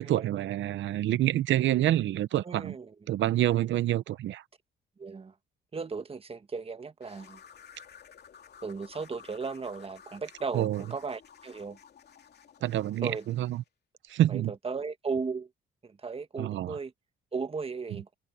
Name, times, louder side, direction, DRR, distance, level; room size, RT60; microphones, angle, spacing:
voice 1, 0.0-2.8 3.1-4.4 10.5-10.8 12.6-13.6 14.1-14.5 16.4-16.8, right 13 dB, 75° right, 0.8 m, -27 dB
voice 2, 2.4-2.9 5.0-5.3 5.7-7.4 8.6-11.8 13.0-13.3 14.3-15.5 15.8-16.9 17.3-18.1, right 4 dB, 30° right, 1.4 m, -36 dB
sound 1, 7.0-13.7, left 7 dB, 55° left, 3.0 m, -54 dB
cardioid pair, 90°, 20 cm